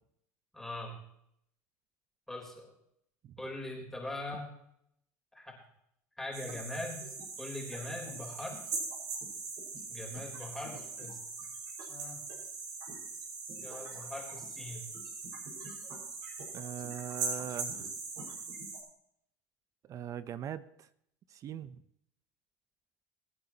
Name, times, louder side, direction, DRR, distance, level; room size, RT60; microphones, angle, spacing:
voice 1, 0.5-1.0 2.3-2.7 3.4-4.5 5.3-5.6 6.2-7.1 7.4-8.6 9.9-11.2 11.9-12.2 13.6-14.9, left 2 dB, 5° left, -1 dB, 3.7 m, -41 dB
sound 1, 6.3-18.8, right 4 dB, 60° right, 5.2 m, -41 dB
voice 2, 16.5-17.9 19.8-20.9 21.3-21.8, right 9 dB, 45° right, 15 dB, 0.7 m, -41 dB
23.5 x 9.4 x 2.9 m, 0.74 s
supercardioid pair, 95°, 8 cm